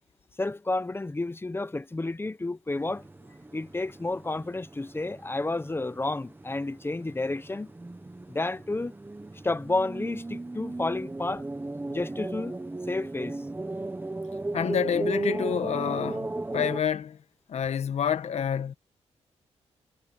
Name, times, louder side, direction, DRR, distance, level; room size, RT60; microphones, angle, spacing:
voice 1, 0.4-3.1 3.5-7.7 8.3-8.9 9.4-11.4 11.9-12.5 12.9-13.4, left 2 dB, 20° left, 0.9 m, -31 dB
sound 1, 2.7-16.8, right 2 dB, 15° right, 1.2 m, -36 dB
voice 2, 14.5-17.2 17.5-18.7, left 8 dB, 70° left, 1.3 m, -28 dB
cardioid pair, 75°, 12 cm